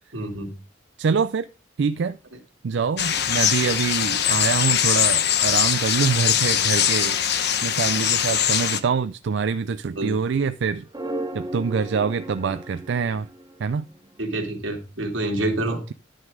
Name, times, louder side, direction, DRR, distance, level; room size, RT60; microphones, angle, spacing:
voice 1, 0.1-0.5 10.0-10.1 14.2-15.8, right 1 dB, 90° right, 2.6 m, -27 dB
voice 2, 1.0-1.5 1.8-2.2 2.6-7.2 7.6-10.9 11.3-13.3 13.6-13.9, right 5 dB, 65° right, 0.4 m, -25 dB
sound 1, 3.0-8.8, left 9 dB, 60° left, 0.9 m, -22 dB
sound 2, 10.9-14.2, right 1 dB, 20° right, 0.7 m, -35 dB
11.0 x 6.4 x 4.8 m
head